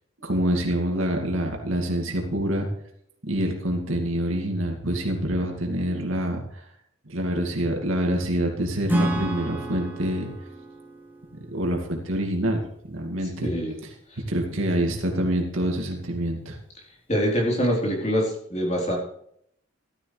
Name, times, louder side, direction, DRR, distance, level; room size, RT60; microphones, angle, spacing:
voice 1, 0.2-2.7 3.2-6.6 7.1-10.3 11.5-13.5 13.8-13.9 14.3-16.6, right 1 dB, 80° right, 1 dB, 2.2 m, -26 dB
Acoustic guitar / Strum, 8.9-12.5, right 1 dB, 10° right, 1.2 m, -30 dB
voice 2, 13.4-13.7 14.1-14.2 17.1-19.0, equal, 35° left, -2 dB, 3.8 m, -24 dB
14.0 x 12.5 x 3.3 m, 0.70 s
head